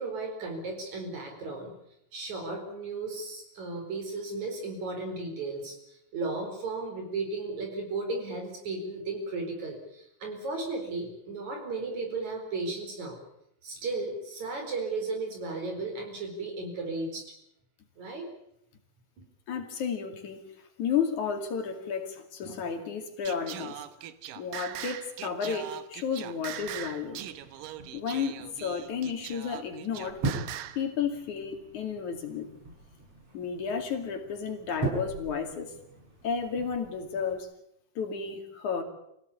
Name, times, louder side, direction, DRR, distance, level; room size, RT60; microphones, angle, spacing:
voice 1, 0.0-1.7 2.1-13.2 13.6-17.3 18.0-18.3, right 3 dB, 60° right, 3 dB, 5.8 m, -35 dB
voice 2, 19.5-20.4 20.8-23.8 24.4-27.2 27.9-30.2 30.8-32.5 33.3-35.7 36.2-37.5 38.0-38.8, left 6 dB, 65° left, 5 dB, 3.7 m, -32 dB
Singing, 23.3-30.8, right 12 dB, 80° right, 2.7 m, -41 dB
sound 1, 26.6-37.4, right 3 dB, 45° right, 7.6 m, -40 dB
25.5 x 16.5 x 8.6 m, 0.78 s
omnidirectional pair, 3.8 m